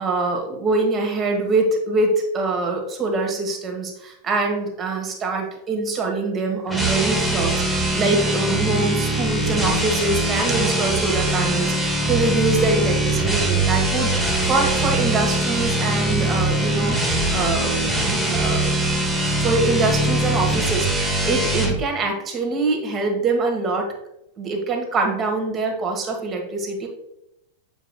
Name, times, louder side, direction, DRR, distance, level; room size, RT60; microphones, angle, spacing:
voice 1, 0.0-14.1 14.5-16.9 17.3-18.7 19.3-23.9 24.4-26.9, right 3 dB, 25° right, 3 dB, 1.3 m, -24 dB
sound 1, 6.7-21.8, right 1 dB, 5° right, 1.1 m, -22 dB
8.1 x 5.2 x 2.2 m, 0.83 s
figure-of-eight pair, 90°, 0 cm